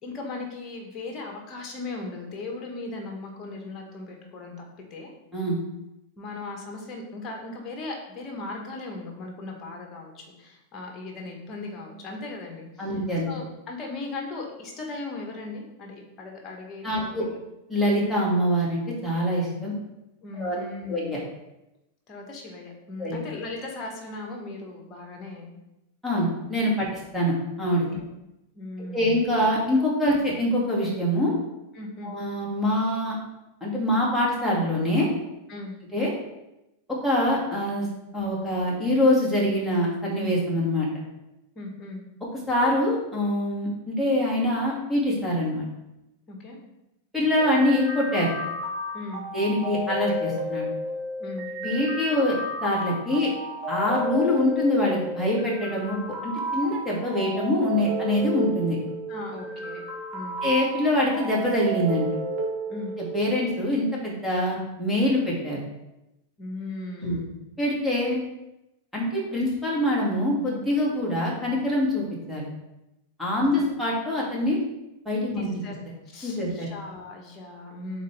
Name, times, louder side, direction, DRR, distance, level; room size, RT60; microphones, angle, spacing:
voice 1, 0.0-5.1 6.2-13.0 13.2-17.4 20.2-21.1 22.1-25.5 26.8-26.9 27.9-28.0 28.5-29.3 31.7-32.1 35.5-35.7 41.5-42.0 46.3-46.6 48.9-49.2 51.2-51.5 59.1-59.8 60.1-60.4 62.7-62.9 66.4-67.4 73.5-73.8 75.4-75.8 76.0-78.0, left 2 dB, 25° left, 1 dB, 1.6 m, -38 dB
voice 2, 12.8-13.3 16.8-17.2 17.7-19.7 20.4-20.6 20.9-21.2 23.0-23.2 26.0-26.9 27.1-27.9 28.9-31.3 32.0-33.2 33.6-35.1 35.9-36.1 36.9-37.9 38.1-40.9 42.5-45.7 47.1-48.3 49.3-50.7 51.6-53.3 53.7-56.0 56.2-58.8 60.4-62.1 63.1-65.6 67.0-67.2 67.6-68.2 68.9-72.5 73.2-74.6 75.1-75.5 76.2-76.7, left 1 dB, ahead, -5 dB, 2.3 m, -24 dB
sound 1, 47.4-63.4, right 1 dB, 30° right, 1.6 m, -32 dB
6.5 x 4.3 x 3.4 m, 0.92 s
figure-of-eight pair, 90°, 0 cm